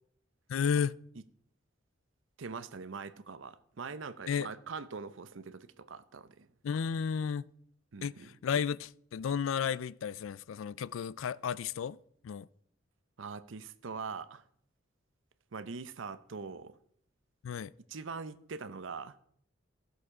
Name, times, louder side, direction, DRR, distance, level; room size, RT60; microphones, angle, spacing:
voice 1, 0.5-1.0 4.3-4.5 6.6-7.5 8.0-12.0 12.2-12.5 17.4-17.7, left 7 dB, 90° left, 0.4 m, -33 dB
voice 2, 2.4-6.5 7.9-8.3 13.2-14.4 15.5-16.7 17.9-19.2, right 5 dB, 80° right, 0.7 m, -42 dB
15.5 x 6.6 x 4.9 m
head